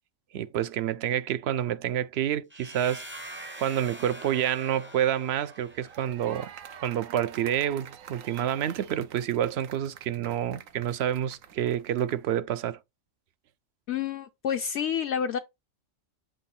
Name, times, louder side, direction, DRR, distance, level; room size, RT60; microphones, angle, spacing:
voice 1, 0.3-3.0 3.6-6.5 6.8-12.8, right 10 dB, 65° right, 0.7 m, -28 dB
sound 1, 2.5-6.3, right 1 dB, 15° right, 0.5 m, -44 dB
sound 2, 5.6-12.3, right 8 dB, 85° right, 1.1 m, -48 dB
voice 2, 13.9-15.4, left 8 dB, 70° left, 0.8 m, -29 dB
7.6 x 3.0 x 4.2 m
omnidirectional pair, 1.3 m